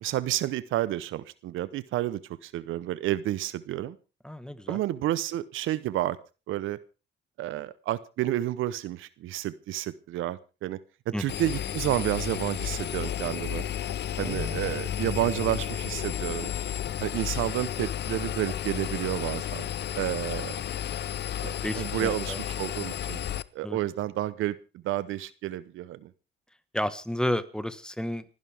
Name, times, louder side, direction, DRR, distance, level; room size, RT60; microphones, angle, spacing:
voice 1, 0.0-4.0 4.7-6.2 6.5-6.8 7.4-10.8 11.1-13.7 14.2-16.5 17.0-19.7 20.0-20.6 21.4-23.2 23.5-26.1, right 14 dB, 85° right, 17 dB, 0.9 m, -30 dB
voice 2, 4.2-4.8 11.1-11.4 14.2-14.8 21.6-22.4 23.6-23.8 26.7-28.2, left 1 dB, 5° left, 13 dB, 1.4 m, -32 dB
Engine, 11.3-23.4, left 11 dB, 60° left, 0.7 m, -32 dB
29.5 x 11.0 x 3.5 m, 0.32 s
cardioid pair, 90°, 20 cm